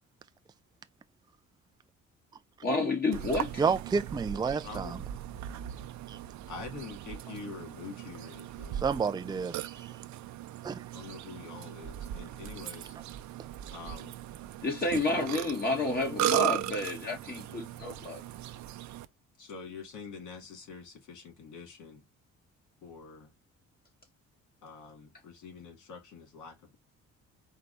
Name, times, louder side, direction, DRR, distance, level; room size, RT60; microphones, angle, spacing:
voice 1, 2.6-3.6 14.6-18.2, left 2 dB, 30° left, 1.4 m, -30 dB
Burping eructation, 3.1-19.1, right 13 dB, 70° right, 0.6 m, -37 dB
voice 2, 3.6-5.0 6.1-6.2 8.8-9.6 10.6-10.8, right 5 dB, 15° right, 0.4 m, -29 dB
voice 3, 4.6-5.0 6.5-8.8 10.9-12.9 13.7-14.2 19.4-22.0 22.8-23.3 24.6-26.8, left 5 dB, 75° left, 2.4 m, -46 dB
4.5 x 2.3 x 3.9 m
cardioid pair, 90°, 30 cm